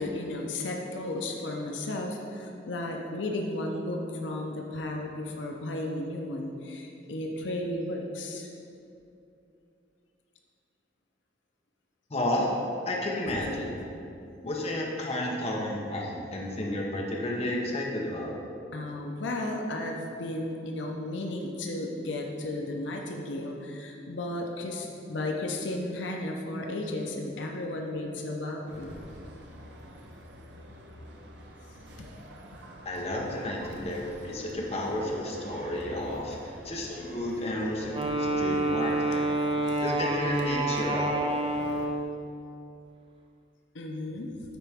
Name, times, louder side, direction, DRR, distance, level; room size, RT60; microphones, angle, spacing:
voice 1, 0.0-8.5 18.7-28.9 32.0-32.1 39.7-39.8 43.7-44.3, left 1 dB, 80° left, 1 dB, 0.6 m, -34 dB
voice 2, 12.1-12.5 12.9-13.7 14.4-18.3 32.8-36.4 36.6-39.3 39.8-41.2, left 1 dB, 35° left, -2 dB, 0.9 m, -32 dB
sound 1, 28.7-41.9, equal, 70° right, 0.8 m, -47 dB
Wind instrument woodwind instrument, 37.9-42.2, right 2 dB, 30° right, 0.5 m, -28 dB
10.5 x 4.1 x 3.5 m, 2.7 s
head